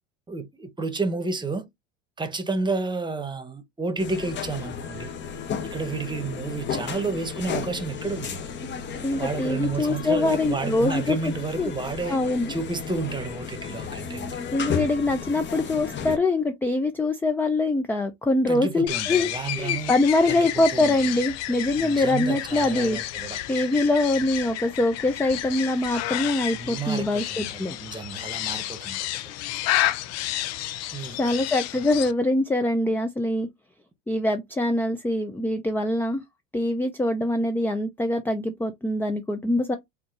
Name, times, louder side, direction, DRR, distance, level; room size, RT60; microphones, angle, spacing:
voice 1, 0.3-1.7 2.2-5.1 5.6-8.4 9.1-12.2 12.5-14.4 18.5-19.9 20.3-20.9 21.8-23.4 26.5-29.3 30.9-31.3, right 4 dB, 15° right, 1.1 m, -31 dB
sound 1, 4.0-16.2, left 6 dB, 35° left, 1.0 m, -34 dB
voice 2, 9.0-11.2 11.6-11.7 12.1-12.5 14.5-19.3 19.6-23.0 23.5-27.8 31.1-33.5 34.1-36.2 36.5-39.8, left 2 dB, 5° left, 0.5 m, -24 dB
sound 2, 18.9-32.1, left 14 dB, 50° left, 0.6 m, -31 dB
4.2 x 2.7 x 4.0 m
supercardioid pair, 100°, 34 cm